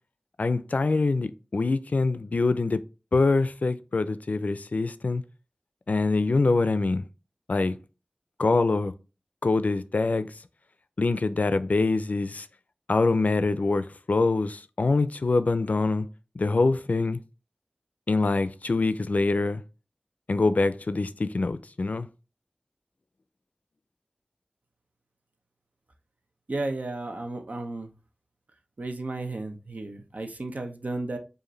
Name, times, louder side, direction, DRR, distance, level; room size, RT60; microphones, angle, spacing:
voice 1, 0.4-2.8 3.1-5.2 5.9-7.0 7.5-7.7 8.4-8.9 9.4-10.3 11.0-12.4 12.9-16.1 16.4-17.2 18.1-19.6 20.3-22.1, left 3 dB, 75° left, 0.3 m, -24 dB
voice 2, 26.5-27.9 28.8-31.2, right 2 dB, 75° right, 0.7 m, -33 dB
4.9 x 2.5 x 3.1 m
wide cardioid pair, 40°, 3 cm